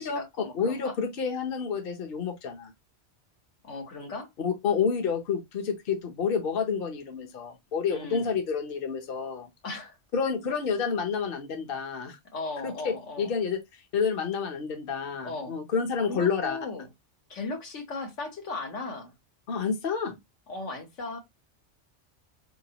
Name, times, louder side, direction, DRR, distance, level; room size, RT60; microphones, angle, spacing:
voice 1, 0.0-0.9 3.6-4.3 7.9-8.4 9.6-10.0 12.3-13.3 15.2-15.6 16.1-16.9 17.3-19.1 20.5-21.2, left 3 dB, 85° left, 1.5 m, -37 dB
voice 2, 0.5-2.7 4.4-9.5 10.1-12.2 12.6-13.6 13.9-16.6 19.5-20.2, left 6 dB, 55° left, 0.9 m, -29 dB
4.1 x 3.0 x 2.8 m
omnidirectional pair, 1.2 m